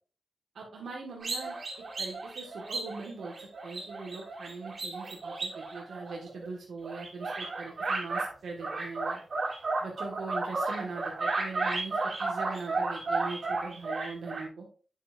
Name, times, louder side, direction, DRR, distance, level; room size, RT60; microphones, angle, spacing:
voice 1, 0.5-1.5 2.0-9.2 9.8-14.6, right 4 dB, 80° right, -1 dB, 1.6 m, -41 dB
sound 1, 1.2-6.5 6.8-8.3 8.6-14.4, right 3 dB, 55° right, 2.8 m, -33 dB
8.2 x 7.2 x 2.5 m, 0.40 s
wide cardioid pair, 90°, 0 cm